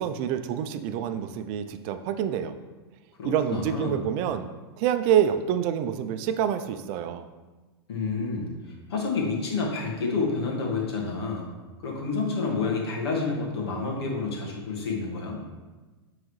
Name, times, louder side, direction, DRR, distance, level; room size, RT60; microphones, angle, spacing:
voice 1, 0.0-2.5 3.2-4.5 4.8-7.2, right 9 dB, 45° right, 9 dB, 0.5 m, -27 dB
voice 2, 3.2-4.0 7.9-11.5 11.8-15.4, left 4 dB, 75° left, -1 dB, 1.7 m, -29 dB
9.3 x 3.9 x 3.1 m, 1.2 s
hypercardioid pair, 110°, 13 cm